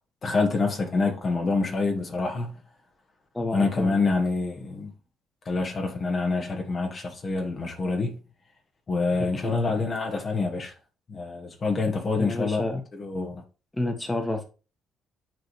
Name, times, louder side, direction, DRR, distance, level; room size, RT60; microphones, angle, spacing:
voice 1, 0.2-2.6 3.5-4.9 5.4-8.2 8.9-10.7 11.1-12.6 13.0-13.4, left 3 dB, 40° left, 1.5 m, -26 dB
voice 2, 3.3-4.0 9.2-9.6 12.2-12.8 13.7-14.4, left 2 dB, 15° left, 1.5 m, -29 dB
9.3 x 4.0 x 3.2 m
figure-of-eight pair, 45°, 0 cm